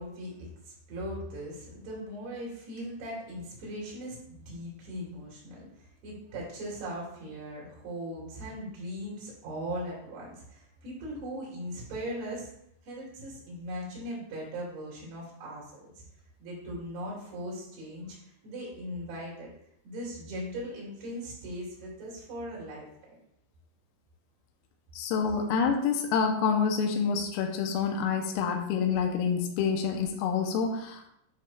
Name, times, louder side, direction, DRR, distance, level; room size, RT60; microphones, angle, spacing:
voice 1, 0.0-12.5 12.8-15.6 16.0-16.1 16.4-19.5 19.8-23.2, equal, 60° right, -5 dB, 4.2 m, -39 dB
voice 2, 25.0-31.1, left 6 dB, 85° left, 3 dB, 3.4 m, -27 dB
10.5 x 4.7 x 2.4 m, 0.75 s
omnidirectional pair, 5.8 m